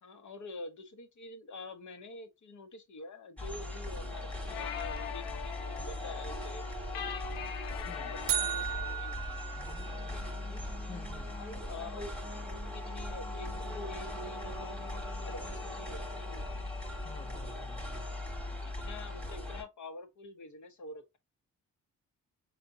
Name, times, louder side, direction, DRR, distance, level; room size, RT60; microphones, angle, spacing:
voice 1, 0.0-9.6 10.0-10.6 11.3-16.6 18.6-21.2, left 2 dB, 55° left, 1.1 m, -48 dB
sound 1, 3.4-19.6, left 1 dB, 5° left, 1.3 m, -39 dB
sound 2, 4.0-9.0, left 9 dB, 85° left, 0.5 m, -42 dB
sound 3, 8.3-10.4, right 11 dB, 70° right, 0.7 m, -35 dB
voice 2, 10.9-11.3 17.0-18.1, left 6 dB, 20° left, 0.5 m, -50 dB
4.1 x 3.3 x 2.5 m
supercardioid pair, 60°, 35 cm